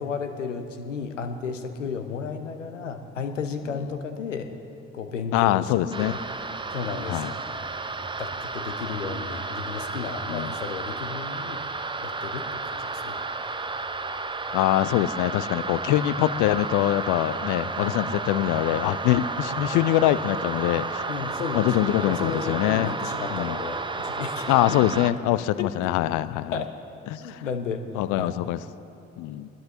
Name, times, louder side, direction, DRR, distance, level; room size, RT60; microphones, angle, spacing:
voice 1, 0.0-4.5 4.9-6.1 6.7-7.2 8.2-11.6 12.0-13.2 17.7-18.0 21.1-23.8 24.0-24.8 25.6-25.7 26.5-26.7 27.2-27.8 28.2-28.4, left 5 dB, 80° left, 8 dB, 0.9 m, -33 dB
voice 2, 5.3-6.2 7.1-7.3 10.3-10.5 14.5-21.0 21.5-22.9 23.3-23.6 24.5-26.6 27.1-27.4 28.0-28.6 29.2-29.5, left 14 dB, 55° left, 17 dB, 0.6 m, -24 dB
sound 1, 5.9-25.1, right 3 dB, 15° right, 0.7 m, -32 dB
22.5 x 20.5 x 2.9 m, 2.8 s
figure-of-eight pair, 45°, 37 cm